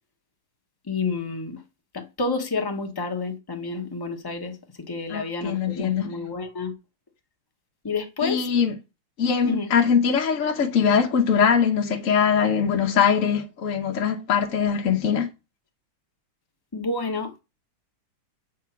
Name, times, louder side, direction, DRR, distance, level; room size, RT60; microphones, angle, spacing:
voice 1, 0.9-1.6 1.9-6.7 7.8-8.5 9.4-9.7 16.7-17.3, left 3 dB, 20° left, 0.5 m, -29 dB
voice 2, 5.1-6.1 8.2-8.7 9.2-15.3, left 7 dB, 55° left, 0.9 m, -22 dB
7.6 x 3.6 x 5.7 m
omnidirectional pair, 2.4 m